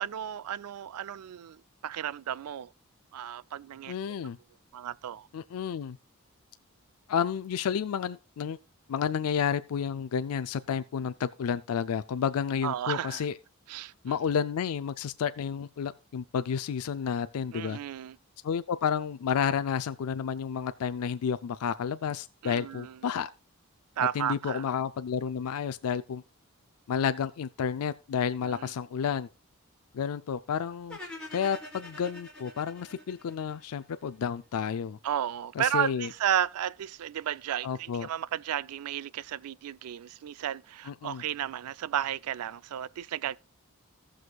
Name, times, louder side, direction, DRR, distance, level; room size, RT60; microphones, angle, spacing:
voice 1, 0.0-1.6 1.8-2.7 3.1-3.9 4.7-5.3 12.6-13.2 13.7-14.2 17.5-18.2 22.4-23.0 24.0-24.7 28.4-28.7 35.0-43.4, right 10 dB, 85° right, 0.3 m, -33 dB
voice 2, 3.9-4.4 5.3-6.0 7.1-8.6 8.9-13.3 14.0-17.8 18.4-23.3 24.0-26.2 26.9-29.3 29.9-31.0 31.3-35.0 35.6-36.1 37.6-38.1 40.9-41.2, left 7 dB, 80° left, 0.4 m, -31 dB
sound 1, 30.9-34.0, left 1 dB, 5° left, 2.0 m, -45 dB
17.0 x 6.2 x 2.3 m
head